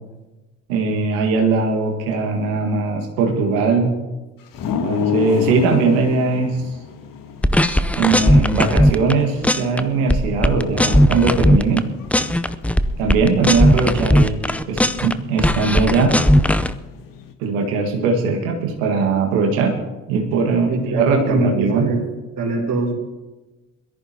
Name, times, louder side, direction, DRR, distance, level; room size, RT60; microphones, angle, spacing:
voice 1, 0.7-3.9 4.8-6.6 8.0-11.9 13.0-14.4 14.7-16.2 17.4-19.8 20.1-21.9, right 4 dB, 80° right, 2 dB, 1.8 m, -20 dB
sound 1, 4.5-17.3, left 8 dB, 60° left, 1.5 m, -32 dB
sound 2, 7.4-9.1 9.4-9.8 10.1-11.8 12.1-15.1 15.4-16.7, equal, 5° left, 0.6 m, -17 dB
voice 2, 20.7-22.0 22.4-22.9, right 2 dB, 55° right, -1 dB, 4.6 m, -22 dB
22.0 x 14.0 x 2.9 m, 1.1 s
hypercardioid pair, 45°, 39 cm